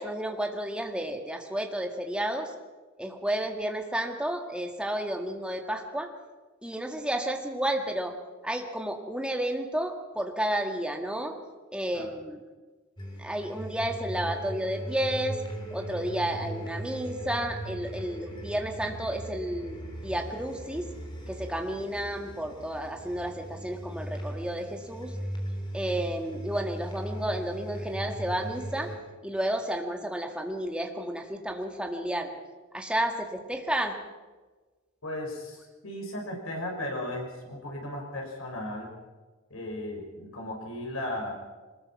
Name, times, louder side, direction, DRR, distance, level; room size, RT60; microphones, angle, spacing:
voice 1, 0.0-2.5 3.0-6.1 6.6-8.1 8.4-11.3 11.7-12.4 13.2-15.4 15.7-20.9 21.3-25.1 25.7-28.9 29.2-32.3 32.7-33.9, right 1 dB, 5° right, 3 dB, 1.9 m, -31 dB
sound 1, 13.0-29.0, right 1 dB, 20° left, 3.4 m, -38 dB
voice 2, 35.0-38.9 39.5-41.3, left 1 dB, 80° left, 1 dB, 5.8 m, -36 dB
22.5 x 20.0 x 5.9 m, 1.3 s
head